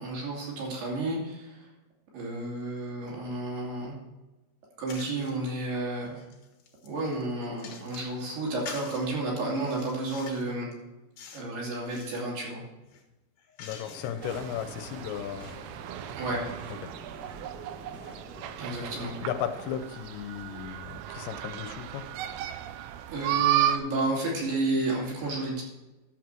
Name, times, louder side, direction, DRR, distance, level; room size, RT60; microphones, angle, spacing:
voice 1, 0.0-1.7 2.1-3.9 4.8-6.2 6.8-10.7 11.3-12.6 16.1-16.5 18.6-19.1 23.1-25.6, right 2 dB, 65° right, -4 dB, 4.8 m, -31 dB
sound 1, 4.9-5.4 5.9-8.2 8.7-9.1 9.6-10.5 11.2-11.5 11.8-12.3 12.8-14.3, left 6 dB, 65° left, 2.7 m, -46 dB
voice 2, 13.6-15.6 16.8-16.9 19.2-22.0, left 9 dB, 90° left, 9 dB, 2.9 m, -35 dB
sound 2, 13.8-19.7, left 1 dB, 5° right, 1.2 m, -48 dB
sound 3, 14.2-23.8, right 11 dB, 85° right, 2.9 m, -33 dB
11.0 x 7.5 x 4.5 m, 1.1 s
omnidirectional pair, 5.2 m